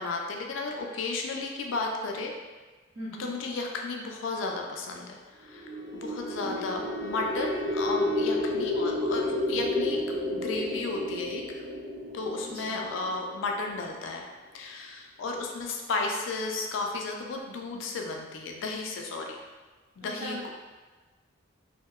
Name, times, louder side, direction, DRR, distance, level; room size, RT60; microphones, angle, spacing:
voice 1, 0.0-2.3 3.2-10.0 10.3-11.6 12.1-14.2 14.5-19.4 20.0-20.5, left 3 dB, 75° left, 2 dB, 0.3 m, -33 dB
voice 2, 2.9-3.3 6.4-6.9 12.4-12.8 20.0-20.5, equal, 30° right, -11 dB, 0.5 m, -41 dB
sound 1, 5.5-13.6, left 1 dB, 55° right, 1.0 m, -31 dB
Wind instrument woodwind instrument, 5.5-9.6, left 2 dB, 85° right, 0.8 m, -48 dB
2.7 x 2.1 x 2.3 m, 1.3 s
head